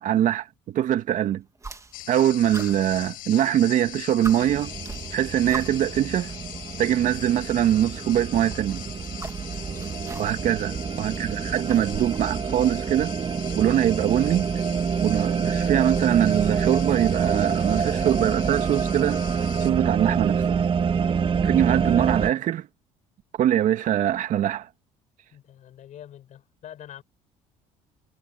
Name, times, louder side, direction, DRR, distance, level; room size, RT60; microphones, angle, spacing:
voice 1, 0.0-1.4 2.1-4.7 5.1-6.3 6.8-8.8 10.2-13.1 13.6-14.5 15.0-19.2 19.6-20.6 21.4-22.7 23.4-24.7, right 11 dB, 60° right, 2.2 m, -23 dB
sound 1, 1.6-2.2 2.5-3.6 3.9-4.0 4.2-6.0 7.0-7.1 8.5-10.6 10.9-12.3, right 3 dB, 20° right, 1.7 m, -40 dB
sound 2, 1.9-19.7, left 17 dB, 75° left, 5.4 m, -41 dB
sound 3, 4.4-22.3, right 6 dB, 35° right, 2.1 m, -27 dB
voice 2, 9.6-10.0 25.3-27.0, left 11 dB, 60° left, 4.9 m, -45 dB
supercardioid pair, 80°, 14 cm